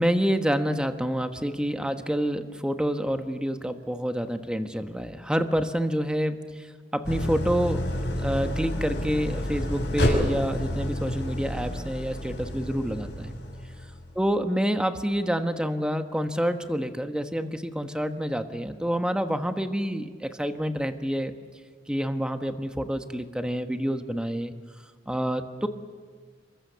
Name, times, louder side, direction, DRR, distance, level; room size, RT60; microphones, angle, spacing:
voice 1, 0.0-6.7 6.9-7.8 8.1-13.4 14.1-21.3 21.9-24.5 25.1-25.7, equal, 5° right, 7 dB, 1.2 m, -28 dB
Idling, 7.0-14.1, left 1 dB, 70° left, 6.2 m, -29 dB
28.0 x 23.0 x 6.9 m, 1.5 s
head